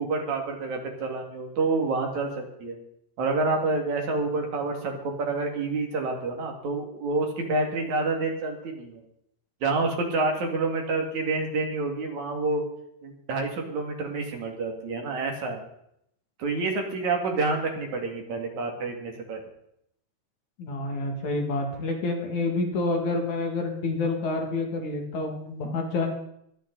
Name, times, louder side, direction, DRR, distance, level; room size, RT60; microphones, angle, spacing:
voice 1, 0.0-2.8 3.2-9.0 9.6-12.6 13.0-15.6 16.4-19.4, right 3 dB, 65° right, 2 dB, 3.6 m, -28 dB
voice 2, 20.6-26.1, left 3 dB, 70° left, 2 dB, 3.5 m, -28 dB
23.5 x 9.5 x 4.0 m, 0.74 s
omnidirectional pair, 3.6 m